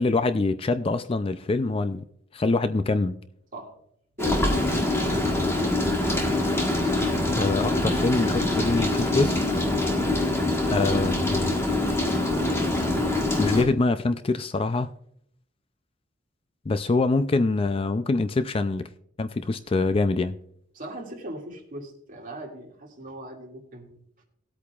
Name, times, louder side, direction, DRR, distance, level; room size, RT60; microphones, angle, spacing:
voice 1, 0.0-2.0 2.3-3.2 7.3-9.6 10.7-11.5 13.4-14.9 16.7-18.9 19.2-20.4, left 3 dB, 30° left, 0.4 m, -24 dB
Rain, 4.2-13.6, left 2 dB, 15° left, 1.4 m, -24 dB
voice 2, 4.2-5.3 20.7-24.0, right 1 dB, 45° right, 2.2 m, -39 dB
18.5 x 8.4 x 2.4 m
head